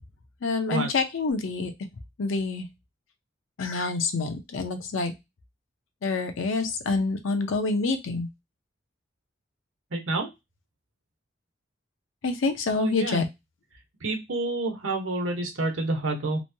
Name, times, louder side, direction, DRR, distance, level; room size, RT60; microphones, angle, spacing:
voice 1, 0.4-1.7 2.2-2.7 3.6-5.1 6.0-8.3 12.2-13.2, left 3 dB, 85° left, 6 dB, 0.6 m, -27 dB
voice 2, 9.9-10.3 12.7-13.3 14.0-16.4, right 2 dB, 85° right, 3 dB, 0.9 m, -28 dB
3.1 x 2.2 x 2.6 m, 0.21 s
head